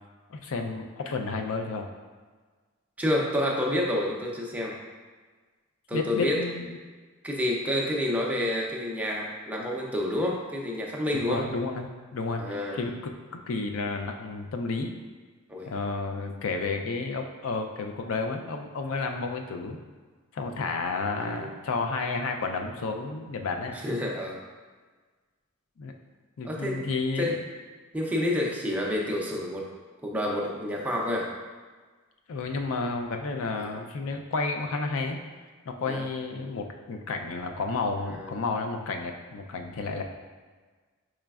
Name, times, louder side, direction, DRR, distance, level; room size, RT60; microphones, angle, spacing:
voice 1, 0.3-1.9 5.9-6.8 11.3-14.9 15.7-19.8 20.3-23.7 25.8-25.9 26.4-27.3 32.3-35.2 35.7-40.0, left 3 dB, 70° left, 4 dB, 0.4 m, -31 dB
voice 2, 3.0-4.8 5.9-6.4 7.2-11.5 12.4-12.9 15.5-15.7 21.0-21.5 23.7-24.4 26.4-26.8 27.2-27.3 27.9-29.7 30.0-31.3 33.6-33.7 35.9-36.0 38.1-38.4, left 1 dB, 5° right, -3 dB, 0.5 m, -29 dB
4.9 x 3.2 x 2.3 m, 1.4 s
head